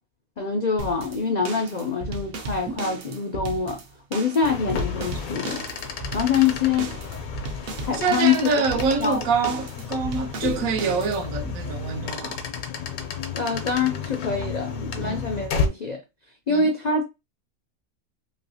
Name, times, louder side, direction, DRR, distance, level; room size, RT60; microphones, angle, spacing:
voice 1, 0.4-3.8 4.1-5.6 6.1-7.0 7.8-8.5 9.0-9.2 13.3-16.0 16.5-17.0, left 5 dB, 70° left, 0.4 m, -25 dB
sound 1, 0.8-11.5, right 2 dB, 55° right, 0.7 m, -36 dB
sound 2, 4.4-15.7, left 5 dB, 85° left, 1.2 m, -32 dB
voice 2, 7.9-12.4 15.0-15.2 16.5-16.7, right 5 dB, 70° right, 1.1 m, -26 dB
3.2 x 2.7 x 2.7 m
omnidirectional pair, 1.5 m